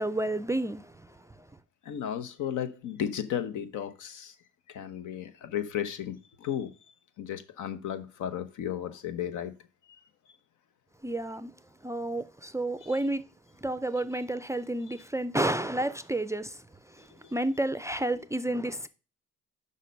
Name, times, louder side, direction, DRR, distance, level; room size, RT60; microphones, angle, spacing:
voice 1, 0.0-1.5 11.0-11.5 11.8-13.2 13.6-18.9, right 1 dB, 10° right, 0.4 m, -31 dB
voice 2, 1.9-4.3 4.7-6.7 7.2-9.5, left 9 dB, 80° left, 1.0 m, -34 dB
6.5 x 5.2 x 5.2 m
cardioid pair, 90°, 30 cm